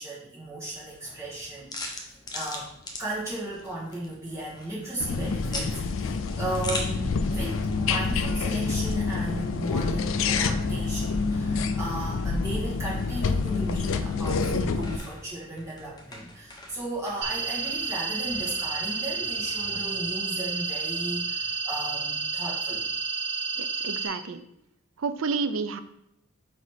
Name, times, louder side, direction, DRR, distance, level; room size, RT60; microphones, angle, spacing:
voice 1, 0.0-22.9, right 1 dB, 15° right, -8 dB, 1.9 m, -35 dB
sound 1, 0.6-20.0, left 2 dB, 20° left, 0.8 m, -43 dB
sound 2, 5.0-15.0, left 4 dB, 70° left, 0.4 m, -27 dB
sound 3, 17.2-24.1, right 4 dB, 50° right, 1.5 m, -30 dB
voice 2, 23.6-24.4 25.0-25.8, right 4 dB, 75° right, 10 dB, 0.5 m, -30 dB
5.3 x 4.1 x 4.8 m, 0.81 s
head